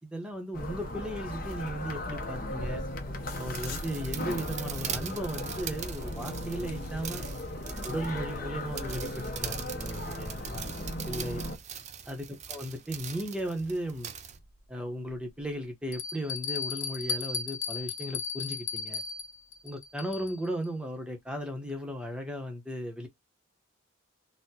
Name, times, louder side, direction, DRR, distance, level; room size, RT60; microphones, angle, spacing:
voice 1, 0.0-2.8 3.4-7.2 7.8-10.7 11.1-11.4 12.1-14.1 14.7-19.0 19.6-23.1, equal, 5° right, 0.8 m, -36 dB
sound 1, 0.5-11.6, left 1 dB, 45° left, 0.7 m, -37 dB
sound 2, 3.3-14.4, right 9 dB, 35° right, 0.4 m, -42 dB
Bell, 14.3-14.4 15.1-15.2 15.9-20.5, left 5 dB, 75° left, 0.8 m, -36 dB
4.1 x 2.1 x 2.7 m
head